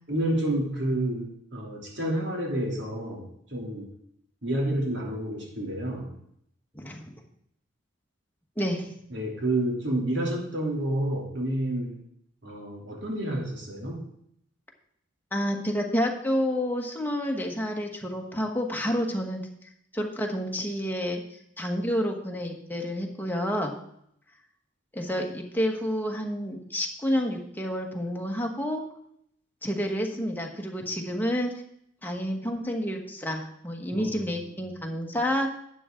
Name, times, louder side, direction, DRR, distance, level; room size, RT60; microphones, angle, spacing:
voice 1, 0.1-3.9 4.4-6.1 9.1-11.9 12.4-14.0 33.9-34.3, right 1 dB, 70° right, -1 dB, 3.0 m, -29 dB
voice 2, 8.6-8.9 15.3-19.4 19.9-21.2 21.6-23.8 24.9-28.8 29.6-31.5 32.0-35.6, equal, 10° left, 1 dB, 1.4 m, -29 dB
12.0 x 8.4 x 3.8 m, 0.71 s
head